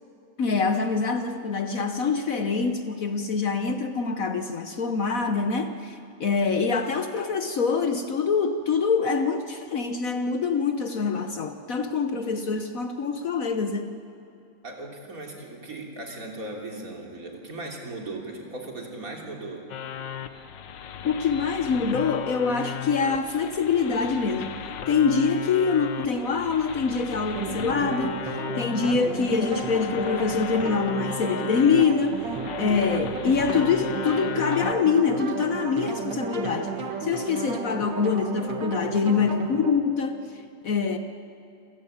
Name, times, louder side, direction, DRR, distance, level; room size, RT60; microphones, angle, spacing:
voice 1, 0.4-14.0 21.0-24.5 24.9-32.3 32.6-36.7 37.0-40.2 40.6-41.0, left 5 dB, 55° left, 7 dB, 1.3 m, -25 dB
voice 2, 14.6-19.7 28.9-29.1, right 2 dB, 50° right, 0 dB, 3.5 m, -37 dB
sound 1, 19.7-34.7, left 9 dB, 80° left, 1.7 m, -36 dB
sound 2, 27.3-39.7, right 5 dB, 85° right, 2.2 m, -33 dB
27.5 x 16.5 x 8.7 m, 2.7 s
omnidirectional pair, 1.9 m